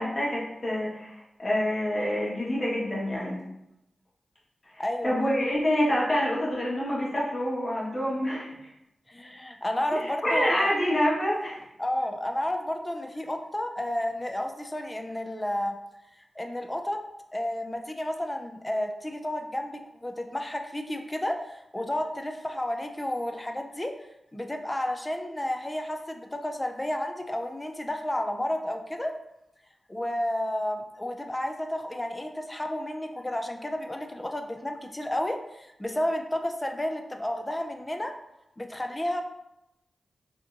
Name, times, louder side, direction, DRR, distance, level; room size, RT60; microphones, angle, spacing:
voice 1, 0.0-3.4 4.7-8.7 9.9-11.6, equal, 40° left, -6 dB, 1.3 m, -27 dB
voice 2, 4.8-5.1 9.1-10.7 11.8-15.8 16.4-17.0 17.3-23.9 24.3-29.1 29.9-38.1 38.6-39.2, left 1 dB, 20° left, 4 dB, 0.4 m, -31 dB
3.5 x 2.8 x 2.5 m, 0.86 s
cardioid pair, 55°, 0 cm